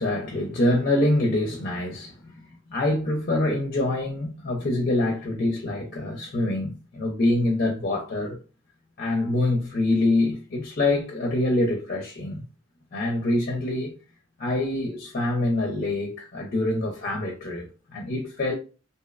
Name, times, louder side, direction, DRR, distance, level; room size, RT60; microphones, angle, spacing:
voice 1, 0.0-8.4 9.0-12.4 12.9-14.0 14.4-18.5, left 2 dB, 45° left, 0.5 m, -25 dB
2.6 x 2.0 x 2.3 m
head